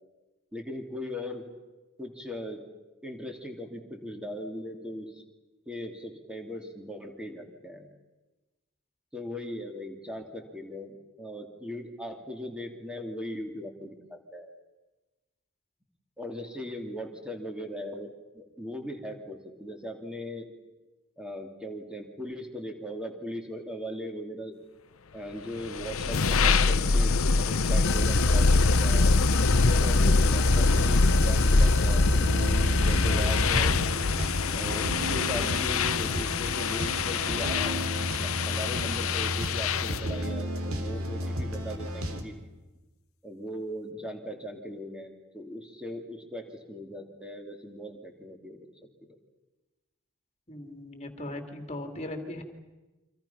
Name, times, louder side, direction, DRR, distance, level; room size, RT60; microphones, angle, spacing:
voice 1, 0.5-1.4 2.0-2.6 3.0-5.2 5.7-7.9 9.1-14.5 16.2-20.5 21.2-24.5 25.1-27.2 27.5-29.1 29.6-32.1 32.8-33.8 34.5-37.9 38.2-42.3 43.2-48.7, equal, 5° right, 3 dB, 3.0 m, -39 dB
sound 1, 25.5-40.1, left 4 dB, 75° left, 0.8 m, -25 dB
sound 2, 27.8-33.9, left 1 dB, 55° left, 1.8 m, -26 dB
sound 3, 30.6-42.2, equal, 85° right, 3.3 m, -33 dB
voice 2, 50.5-52.4, left 1 dB, 30° left, 4 dB, 2.8 m, -38 dB
29.0 x 25.5 x 5.9 m, 1.1 s
head